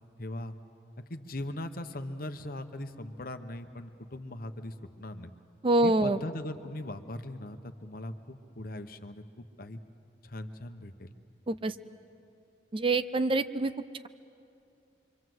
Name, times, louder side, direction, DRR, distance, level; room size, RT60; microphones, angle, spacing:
voice 1, 0.2-0.5 1.0-5.3 5.8-9.8 10.2-11.1, left 1 dB, 55° left, 8 dB, 1.1 m, -40 dB
voice 2, 5.6-6.2 11.5-11.7 12.7-13.7, right 2 dB, 30° right, 12 dB, 0.5 m, -25 dB
27.0 x 24.0 x 7.8 m, 2.7 s
head